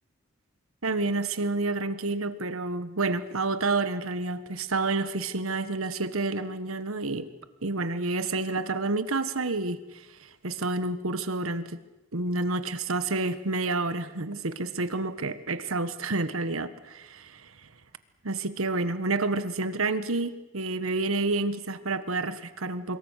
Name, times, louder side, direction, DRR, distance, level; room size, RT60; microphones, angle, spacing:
voice 1, 0.8-7.3 7.6-11.8 12.1-17.5 18.2-23.0, right 3 dB, 85° right, 12 dB, 1.4 m, -29 dB
26.0 x 22.0 x 6.6 m, 1.1 s
head